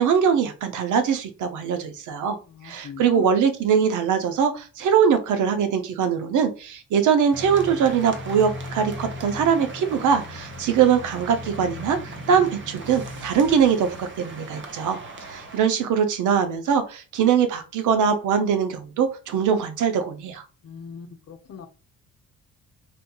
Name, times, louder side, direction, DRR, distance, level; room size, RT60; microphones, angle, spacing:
voice 1, 0.0-2.4 2.6-12.0 12.3-20.4, right 7 dB, 80° right, 8 dB, 0.8 m, -22 dB
voice 2, 2.5-3.3 20.6-21.7, left 7 dB, 55° left, 7 dB, 0.8 m, -40 dB
sound 1, 7.3-15.6, equal, 40° right, 0.9 m, -37 dB
4.3 x 2.6 x 2.3 m, 0.34 s
cardioid pair, 90°, 30 cm